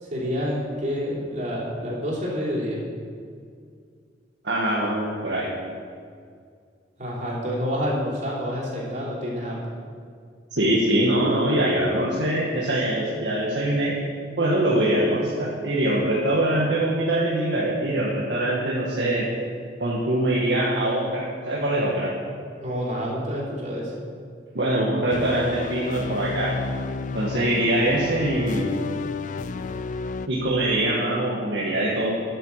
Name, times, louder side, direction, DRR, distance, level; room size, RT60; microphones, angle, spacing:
voice 1, 0.0-2.8 7.0-9.7 22.6-23.9, equal, 45° right, -4 dB, 3.4 m, -28 dB
voice 2, 4.4-5.5 10.5-13.9 14.4-19.2 19.8-22.1 24.5-26.6 27.1-28.8 30.3-32.1, right 1 dB, 75° right, -5 dB, 1.7 m, -23 dB
sound 1, 25.1-30.3, left 4 dB, 45° left, 0.4 m, -31 dB
9.4 x 8.8 x 7.4 m, 2.2 s
head